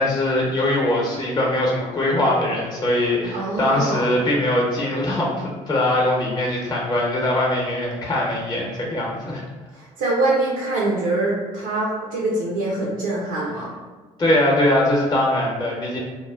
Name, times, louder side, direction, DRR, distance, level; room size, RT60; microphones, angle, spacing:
voice 1, 0.0-9.4 14.2-16.0, left 1 dB, 25° left, -2 dB, 0.8 m, -21 dB
voice 2, 3.3-4.0 9.7-13.7, right 2 dB, 85° right, -4 dB, 0.5 m, -24 dB
2.1 x 2.0 x 3.5 m, 1.3 s
hypercardioid pair, 55°, 17 cm